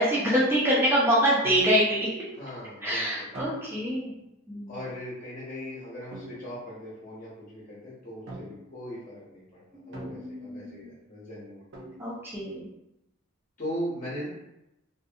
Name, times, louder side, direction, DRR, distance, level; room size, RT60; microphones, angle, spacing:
voice 1, 0.0-2.1 2.8-4.1 4.5-4.7 9.7-10.9 12.0-12.7, equal, 10° right, -7 dB, 0.6 m, -25 dB
sound 1, 1.4-2.1 3.3-4.1 6.1-6.7 8.3-8.9 9.9-10.7 11.7-12.3, equal, 60° right, 0.6 m, -43 dB
voice 2, 2.3-3.3 4.7-11.6 13.6-14.3, equal, 40° left, -8 dB, 0.8 m, -39 dB
2.6 x 2.5 x 2.5 m, 0.87 s
head